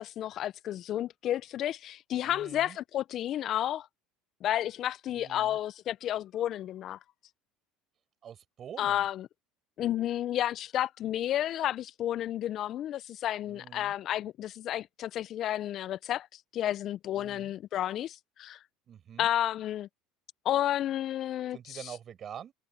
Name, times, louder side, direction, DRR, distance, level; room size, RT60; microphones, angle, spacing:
voice 1, 0.0-3.9 4.4-7.0 8.8-9.3 9.8-16.3 16.5-18.6 19.2-19.9 20.4-21.8, left 12 dB, 50° left, 0.4 m, -31 dB
voice 2, 2.2-2.8 5.1-5.6 8.2-9.1 13.5-13.9 17.1-17.5 18.9-19.3 21.5-22.5, right 9 dB, 40° right, 7.0 m, -46 dB
hypercardioid pair, 85°, 0 cm